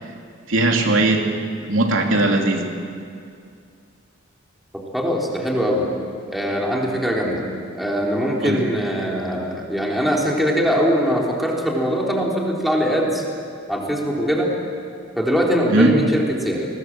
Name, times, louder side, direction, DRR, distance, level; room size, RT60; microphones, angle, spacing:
voice 1, 0.5-1.2 1.6-2.7 8.4-8.6 15.7-15.9, right 2 dB, 85° right, 2 dB, 2.9 m, -18 dB
voice 2, 4.9-5.9 6.3-7.5 7.8-13.2 13.7-14.5 15.2-16.7, equal, ahead, -2 dB, 3.7 m, -21 dB
29.0 x 20.5 x 7.7 m, 2.4 s
head